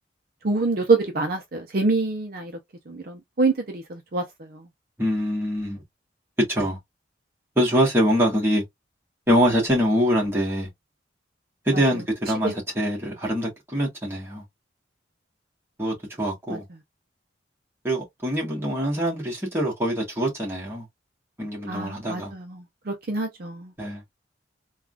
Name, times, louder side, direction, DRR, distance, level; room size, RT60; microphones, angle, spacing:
voice 1, 0.4-2.6 2.9-4.7 11.7-12.0 12.4-12.5 16.5-16.6 21.7-23.7, right 3 dB, 50° right, 0.6 m, -26 dB
voice 2, 5.0-5.8 6.5-6.8 7.6-8.6 9.3-10.7 11.7-14.4 15.8-16.6 17.8-20.8 21.4-22.3 23.8-24.2, equal, 10° right, 1.4 m, -24 dB
3.5 x 2.3 x 2.4 m
head